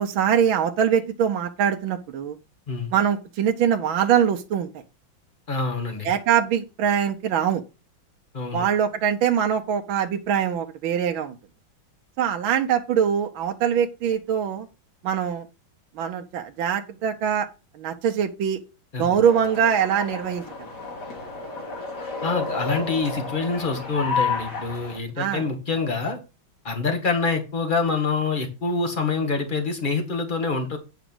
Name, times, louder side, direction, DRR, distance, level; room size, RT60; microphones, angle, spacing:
voice 1, 0.0-2.4 2.9-4.7 6.0-7.6 8.5-11.3 12.2-14.7 15.0-15.4 16.0-17.5 17.8-18.6 19.0-20.4 25.2-25.4, right 8 dB, 75° right, 4 dB, 1.5 m, -23 dB
voice 2, 5.5-6.1 8.3-8.6 18.9-19.2 22.2-26.2 26.6-30.8, left 4 dB, 25° left, 4 dB, 1.9 m, -26 dB
sound 1, 19.2-25.0, left 4 dB, 50° left, 3.0 m, -31 dB
9.2 x 4.9 x 6.1 m, 0.29 s
omnidirectional pair, 2.3 m